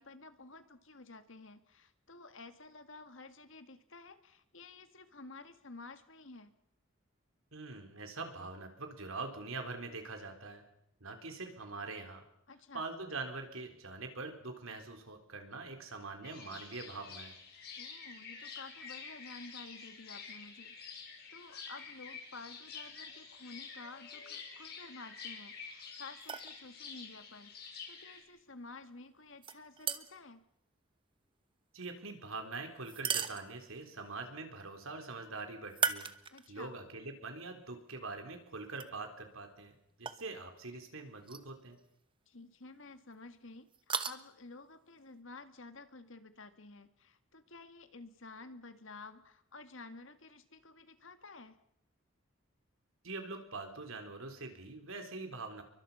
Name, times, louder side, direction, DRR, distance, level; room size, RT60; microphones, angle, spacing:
voice 1, 0.0-6.5 12.5-12.8 17.8-20.8 21.3-30.4 36.3-36.7 42.3-51.6, left 3 dB, 70° left, 9 dB, 1.9 m, -52 dB
voice 2, 7.5-10.7 11.0-12.2 12.7-17.3 31.7-36.1 36.5-39.7 40.0-41.8 53.0-55.6, right 3 dB, 80° right, 5 dB, 4.0 m, -44 dB
sound 1, 16.2-28.2, left 5 dB, 50° left, 5.8 m, -48 dB
sound 2, 26.2-26.5 29.4-30.3 32.8-33.9 35.7-36.7 37.2-37.3 38.7-38.9 40.1-40.2 41.2-41.5 41.8-41.9 43.7-44.1, right 7 dB, 25° right, 1.1 m, -36 dB
29.5 x 23.5 x 5.6 m, 0.77 s
head